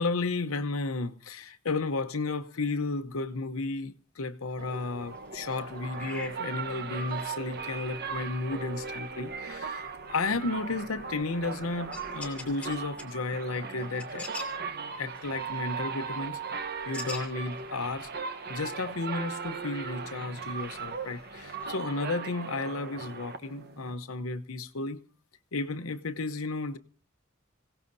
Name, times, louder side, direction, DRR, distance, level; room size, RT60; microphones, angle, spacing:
voice 1, 0.0-14.3 15.0-16.4 16.9-18.1 18.5-25.0 25.5-26.8, left 3 dB, 85° left, 0.8 m, -33 dB
sound 1, 4.4-21.7, left 3 dB, 5° left, 2.6 m, -49 dB
sound 2, 4.6-23.9, right 5 dB, 50° right, 1.1 m, -38 dB
26.0 x 17.0 x 2.7 m
head